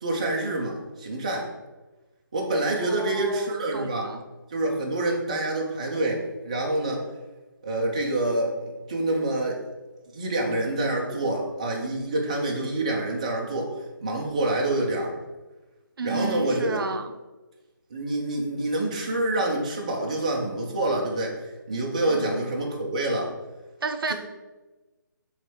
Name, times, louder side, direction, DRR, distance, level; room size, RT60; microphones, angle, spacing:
voice 1, 0.0-1.5 2.3-4.1 4.5-7.0 7.6-9.6 10.1-13.7 14.0-15.1 16.0-16.8 17.9-21.4 21.7-23.3, right 2 dB, 20° right, -1 dB, 0.4 m, -27 dB
voice 2, 2.8-4.2 16.0-17.1 22.1-22.3 23.8-24.1, right 3 dB, 80° right, 7 dB, 0.5 m, -32 dB
3.2 x 3.1 x 4.3 m, 1.1 s
hypercardioid pair, 175°, 12 cm